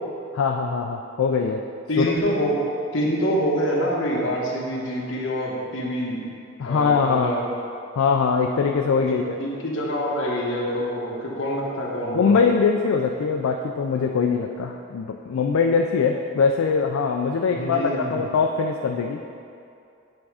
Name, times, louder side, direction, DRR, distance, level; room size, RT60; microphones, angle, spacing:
voice 1, 0.3-1.6 2.0-2.1 6.6-7.4 8.0-9.4 12.1-19.3, left 5 dB, 80° left, 3 dB, 0.3 m, -22 dB
voice 2, 1.9-2.6 2.9-6.2 6.6-7.4 9.0-12.4 17.5-18.2, equal, 65° left, -3 dB, 1.2 m, -26 dB
8.6 x 3.6 x 4.8 m, 2.5 s
head